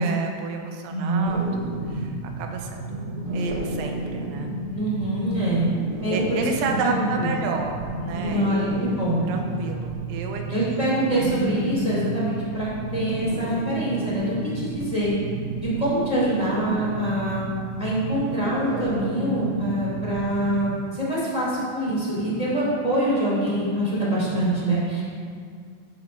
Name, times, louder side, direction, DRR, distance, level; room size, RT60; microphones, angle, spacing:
voice 1, 0.0-1.5 1.9-4.5 6.1-8.7 9.2-10.4, right 4 dB, 90° right, 3 dB, 3.2 m, -31 dB
voice 2, 0.9-1.3 4.7-5.6 6.0-6.4 6.8-7.3 8.3-9.2 10.5-15.1 15.6-17.4 17.8-25.0, right 1 dB, 15° left, -9 dB, 1.5 m, -25 dB
sound 1, 1.2-20.6, right 2 dB, 65° right, 3.1 m, -31 dB
16.5 x 7.9 x 2.6 m, 2.1 s
omnidirectional pair, 5.5 m